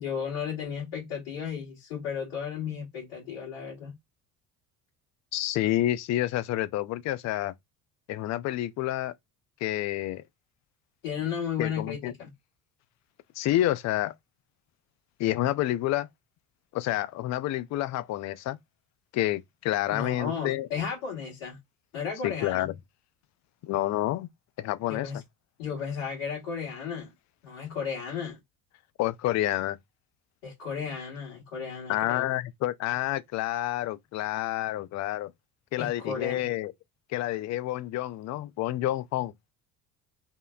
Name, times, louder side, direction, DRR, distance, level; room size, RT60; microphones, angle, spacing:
voice 1, 0.0-4.0 11.0-12.3 19.9-21.6 21.9-22.7 24.9-25.2 25.6-27.1 27.4-28.4 30.4-32.2 35.8-36.5, left 7 dB, 75° left, 1.8 m, -34 dB
voice 2, 5.3-7.5 8.1-9.1 9.6-10.2 11.6-12.1 13.4-14.1 15.2-16.1 16.7-18.6 19.1-20.7 22.2-22.7 23.6-24.3 24.6-25.1 29.0-29.8 31.9-35.3 35.7-36.7 37.1-39.5, left 14 dB, 40° left, 0.4 m, -29 dB
3.7 x 2.0 x 2.3 m
hypercardioid pair, 60°, 43 cm